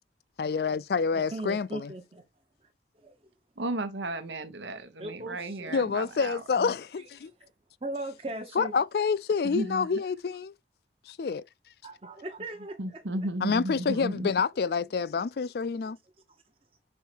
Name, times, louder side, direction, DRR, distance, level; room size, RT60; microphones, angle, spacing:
voice 1, 0.4-1.9 5.7-7.3 8.6-10.5 11.1-11.4 13.4-16.0, left 5 dB, 60° left, 0.4 m, -28 dB
voice 2, 1.1-2.2 3.0-3.1 5.0-6.1 7.4-7.5 7.8-8.7 11.8-13.0 15.8-15.9, right 2 dB, 30° right, 0.8 m, -39 dB
voice 3, 3.6-6.7 9.4-9.9 12.8-14.3, right 1 dB, 85° right, 1.0 m, -34 dB
5.5 x 4.3 x 4.4 m
head